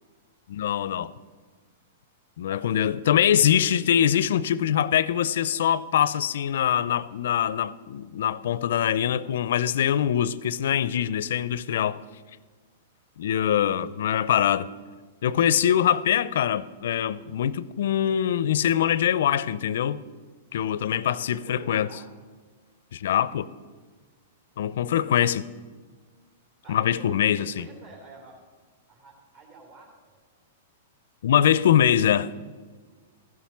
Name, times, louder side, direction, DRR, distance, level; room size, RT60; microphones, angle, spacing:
voice 1, 0.5-1.1 2.4-12.0 13.2-14.7 15.2-20.0 20.5-21.9 22.9-23.5 24.6-25.5 26.7-27.7 31.2-32.3, left 10 dB, 70° left, 0.4 m, -23 dB
voice 2, 15.4-15.7 17.1-17.3 21.0-22.1 26.6-28.4 28.9-30.1, right 4 dB, 50° right, 2.7 m, -49 dB
14.0 x 7.2 x 6.0 m
hypercardioid pair, 120°, 0 cm